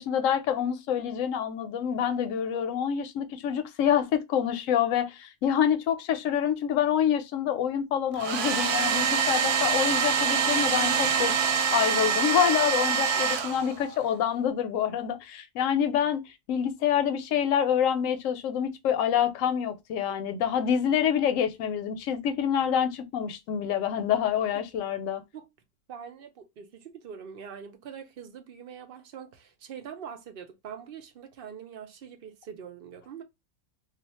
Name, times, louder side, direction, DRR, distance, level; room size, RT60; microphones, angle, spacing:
voice 1, 0.0-11.4 11.7-16.2 16.5-25.2, left 9 dB, 65° left, 0.9 m, -27 dB
Domestic sounds home sounds, 8.1-14.0, right 6 dB, 90° right, 1.1 m, -25 dB
voice 2, 25.9-33.2, right 7 dB, 70° right, 0.5 m, -43 dB
2.4 x 2.3 x 4.0 m
omnidirectional pair, 1.6 m